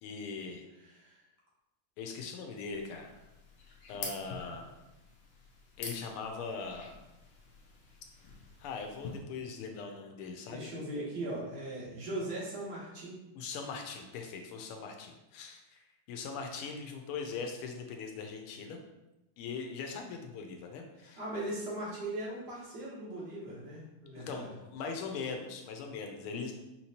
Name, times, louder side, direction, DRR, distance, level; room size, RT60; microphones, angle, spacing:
voice 1, 0.0-0.6 2.0-3.1 3.9-4.8 5.8-7.0 8.6-10.7 13.3-15.8 16.1-18.8 19.4-21.2 24.2-26.5, left 5 dB, 90° left, 4 dB, 1.6 m, -40 dB
voice 2, 0.8-1.2 10.5-13.2 21.0-24.5, right 1 dB, 55° right, -6 dB, 1.6 m, -39 dB
sound 1, 2.7-9.2, left 4 dB, 70° left, 1.5 m, -47 dB
5.1 x 2.9 x 2.8 m, 0.97 s
omnidirectional pair, 2.3 m